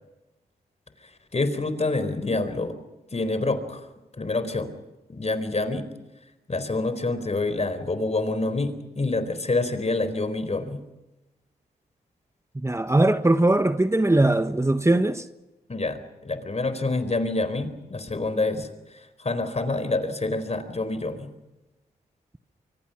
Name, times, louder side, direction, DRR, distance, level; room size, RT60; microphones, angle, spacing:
voice 1, 1.3-2.8 3.1-3.8 4.2-4.7 5.1-5.9 6.5-10.8 15.7-18.7 19.2-21.3, left 2 dB, 40° left, 4.3 m, -27 dB
voice 2, 12.6-15.2, right 2 dB, 15° right, 1.3 m, -20 dB
25.0 x 24.0 x 6.0 m
cardioid pair, 45°, 17 cm